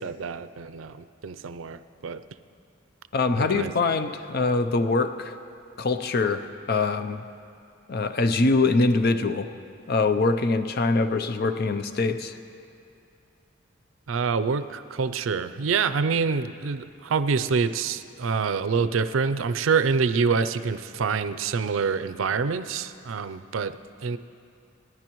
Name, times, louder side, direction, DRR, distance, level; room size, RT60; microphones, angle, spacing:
voice 1, 0.0-2.2 3.4-3.7 14.1-24.2, right 5 dB, 85° right, 14 dB, 0.5 m, -26 dB
voice 2, 3.1-5.3 5.8-7.2 7.9-9.5 9.9-12.4, left 3 dB, 50° left, 9 dB, 0.6 m, -23 dB
28.0 x 11.0 x 3.1 m, 2.5 s
head